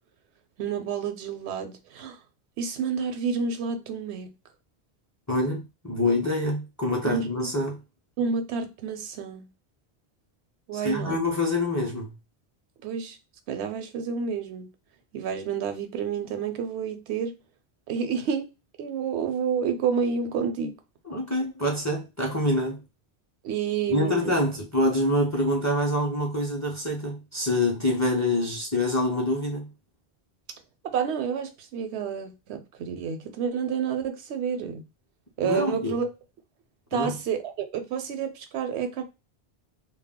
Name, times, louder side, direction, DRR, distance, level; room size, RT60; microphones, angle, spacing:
voice 1, 0.6-2.2 2.6-4.3 7.0-7.3 8.2-9.5 10.7-11.2 12.8-13.2 13.5-14.7 15.1-17.3 17.9-18.5 18.8-20.7 23.4-24.3 30.8-34.8 35.4-36.1 36.9-39.0, right 6 dB, 85° right, 0.8 m, -29 dB
voice 2, 5.3-7.8 10.8-12.1 21.1-22.8 23.9-29.7 35.4-36.0 36.9-37.2, left 1 dB, 20° left, 0.5 m, -26 dB
2.3 x 2.1 x 3.5 m
omnidirectional pair, 1.1 m